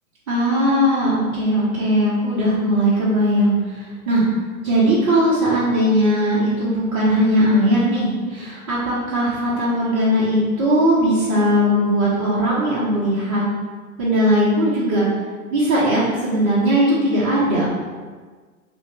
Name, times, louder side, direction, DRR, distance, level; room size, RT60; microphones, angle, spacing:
voice 1, 0.3-4.2 4.6-13.4 14.0-15.1 15.5-17.7, equal, 20° right, -9 dB, 0.3 m, -19 dB
2.6 x 2.5 x 3.1 m, 1.4 s
hypercardioid pair, 110°, 43 cm